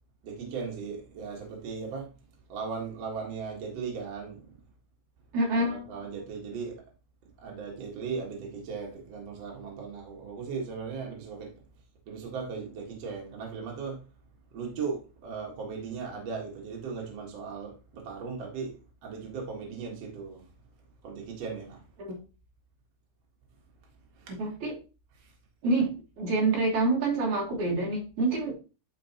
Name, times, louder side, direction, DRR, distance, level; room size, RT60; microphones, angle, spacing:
voice 1, 0.2-2.1 2.5-4.5 5.5-6.8 7.4-11.5 12.0-14.0 14.5-18.7 19.0-20.5 21.0-21.8 24.1-24.3 25.1-25.3, right 5 dB, 70° right, 1.5 m, -37 dB
voice 2, 5.3-5.8 22.0-22.2 24.4-24.8 25.6-28.5, right 2 dB, 55° right, 2.1 m, -27 dB
11.5 x 4.6 x 2.9 m
omnidirectional pair, 5.6 m